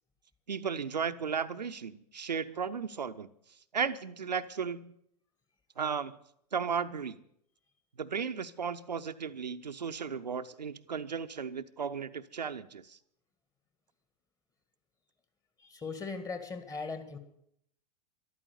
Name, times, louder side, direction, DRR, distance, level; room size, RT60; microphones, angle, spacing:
voice 1, 0.5-3.3 3.7-5.0 5.8-6.2 6.5-7.2 8.0-13.0, right 6 dB, 80° right, 9 dB, 0.7 m, -35 dB
voice 2, 15.6-17.2, left 4 dB, 15° left, 8 dB, 1.8 m, -39 dB
13.5 x 12.0 x 6.8 m, 0.73 s
figure-of-eight pair, 95°, 21 cm